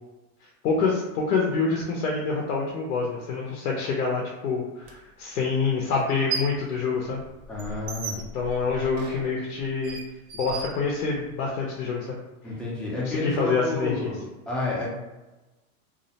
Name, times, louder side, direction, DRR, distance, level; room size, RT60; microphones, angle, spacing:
voice 1, 0.6-7.2 8.3-10.0 10.4-12.1 13.0-14.1, left 4 dB, 85° left, -1 dB, 0.6 m, -26 dB
sound 1, 4.8-4.9 6.0-6.7 7.0-11.4, right 5 dB, 55° right, 0.6 m, -36 dB
voice 2, 7.5-8.2 12.4-14.9, left 2 dB, ahead, -7 dB, 0.3 m, -30 dB
2.4 x 2.0 x 2.7 m, 1.1 s
supercardioid pair, 115°, 44 cm